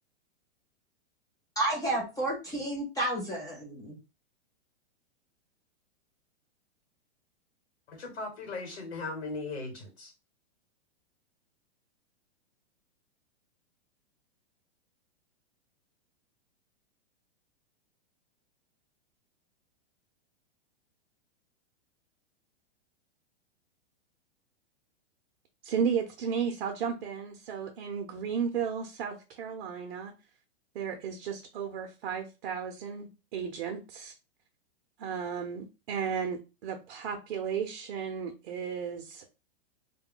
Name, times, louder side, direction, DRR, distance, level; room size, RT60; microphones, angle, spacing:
voice 1, 1.6-4.0, right 1 dB, 10° left, -2 dB, 0.5 m, -31 dB
voice 2, 7.9-10.1, left 3 dB, 80° left, 2 dB, 1.3 m, -38 dB
voice 3, 25.6-30.1 30.7-34.1 35.0-39.3, right 7 dB, 65° right, 4 dB, 0.7 m, -34 dB
2.3 x 2.2 x 3.6 m, 0.29 s
hypercardioid pair, 135°, 32 cm